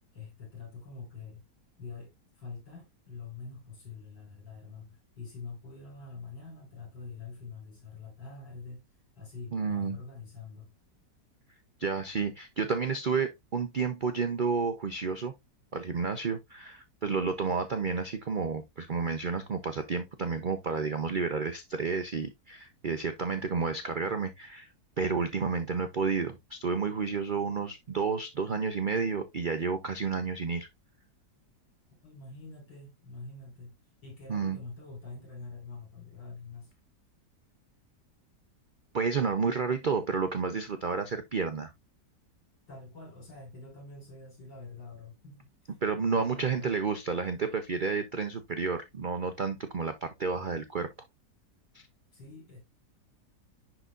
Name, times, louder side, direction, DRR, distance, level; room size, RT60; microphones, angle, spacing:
voice 1, 0.1-1.4 1.8-8.8 9.2-10.7 32.0-33.8 34.0-36.7 42.7-45.8 46.1-46.7 52.1-52.6, left 4 dB, 80° left, 5.8 m, -45 dB
voice 2, 9.5-10.0 11.8-15.3 15.7-24.7 25.0-30.7 34.3-34.6 38.9-41.7 45.8-50.9 51.7-51.9, right 5 dB, 80° right, 0.4 m, -31 dB
10.5 x 4.0 x 2.4 m
omnidirectional pair, 1.9 m